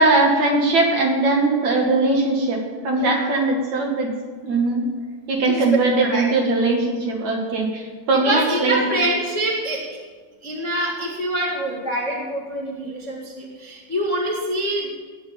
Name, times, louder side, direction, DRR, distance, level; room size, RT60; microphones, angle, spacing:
voice 1, 0.0-4.1 4.4-4.9 5.3-8.8, right 2 dB, 50° right, 0 dB, 3.0 m, -20 dB
voice 2, 2.9-3.3 5.4-6.5 8.2-9.8 10.4-15.0, right 1 dB, 35° left, -4 dB, 1.2 m, -25 dB
19.0 x 6.5 x 8.7 m, 1.5 s
omnidirectional pair, 4.8 m